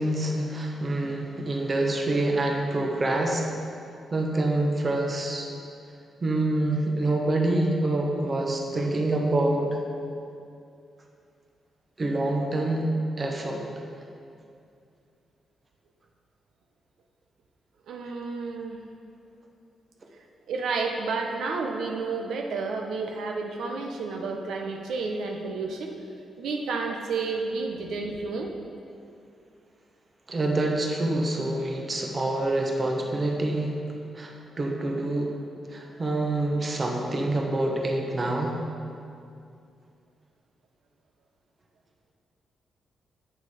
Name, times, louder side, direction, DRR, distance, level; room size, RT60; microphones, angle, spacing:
voice 1, 0.0-3.5 4.1-5.5 6.2-9.8 12.0-12.9 13.2-13.6 30.3-33.8 34.1-35.3 35.7-38.6, right 2 dB, 30° right, 1 dB, 1.0 m, -26 dB
voice 2, 17.9-18.8 20.5-26.0 26.4-28.5, right 4 dB, 85° right, 2 dB, 0.8 m, -31 dB
8.6 x 6.7 x 4.9 m, 2.5 s
wide cardioid pair, 135°, 0 cm